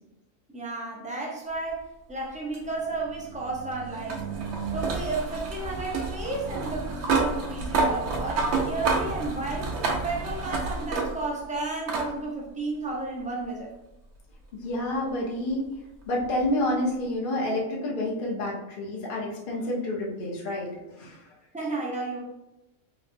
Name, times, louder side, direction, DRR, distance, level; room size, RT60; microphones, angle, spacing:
voice 1, 0.5-4.2 4.7-9.7 10.0-13.7 21.5-22.2, right 3 dB, 10° right, -3 dB, 0.4 m, -32 dB
sound 1, 2.5-11.4 11.9-12.1 13.4-13.5 16.4-16.5, right 3 dB, 60° right, 0.9 m, -29 dB
voice 2, 14.5-15.7 16.1-21.2, left 1 dB, 45° left, -4 dB, 0.9 m, -29 dB
4.0 x 3.0 x 2.6 m, 0.94 s
omnidirectional pair, 1.5 m